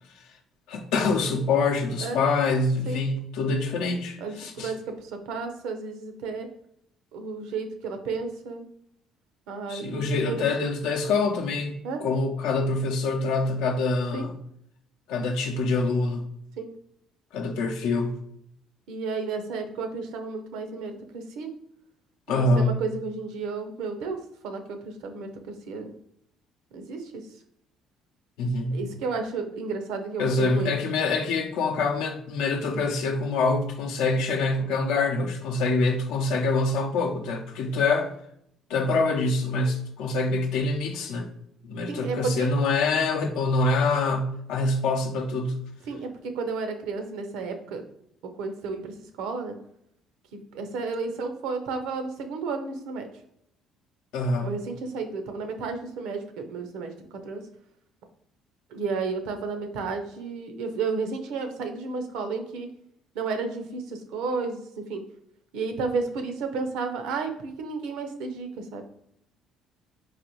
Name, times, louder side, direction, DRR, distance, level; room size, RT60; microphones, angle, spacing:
voice 1, 0.7-4.7 9.7-11.7 12.0-14.3 15.1-16.2 17.3-18.2 22.3-22.7 28.4-28.8 30.2-38.1 38.7-41.3 41.6-45.6 54.1-54.5, left 3 dB, 80° left, 0.6 m, -25 dB
voice 2, 4.2-6.5 7.1-8.6 9.5-10.5 11.8-12.0 14.1-14.3 16.6-16.7 18.9-21.5 22.3-25.9 26.7-27.3 28.7-30.7 41.9-42.5 45.9-47.8 48.4-49.6 50.3-53.1 54.4-57.5 58.7-62.7 63.1-65.0 65.5-68.8, right 4 dB, 80° right, 0.6 m, -32 dB
4.0 x 2.6 x 2.9 m
supercardioid pair, 85°, 0 cm